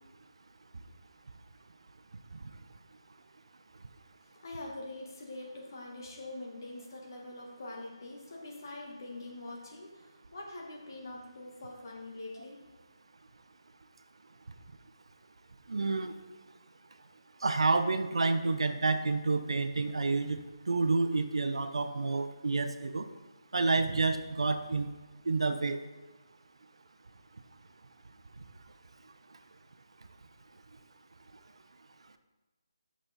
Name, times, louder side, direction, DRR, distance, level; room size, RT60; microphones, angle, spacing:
voice 1, 4.2-12.6, left 2 dB, 45° left, -2 dB, 2.0 m, -44 dB
voice 2, 15.7-16.1 17.4-20.4 20.7-23.1 23.5-24.9 25.3-25.8, right 3 dB, 75° right, 9 dB, 0.7 m, -29 dB
7.8 x 6.2 x 4.2 m, 1.2 s
hypercardioid pair, 170°, 3 cm